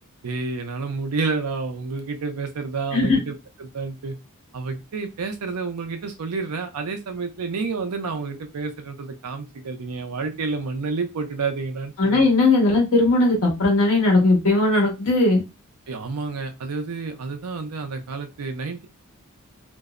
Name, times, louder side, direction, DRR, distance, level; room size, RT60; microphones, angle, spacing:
voice 1, 0.2-4.1 4.5-12.3 15.9-18.9, right 4 dB, 85° right, 6 dB, 0.5 m, -29 dB
voice 2, 12.0-15.4, left 2 dB, 65° left, -1 dB, 1.1 m, -18 dB
2.6 x 2.0 x 2.4 m, 0.25 s
head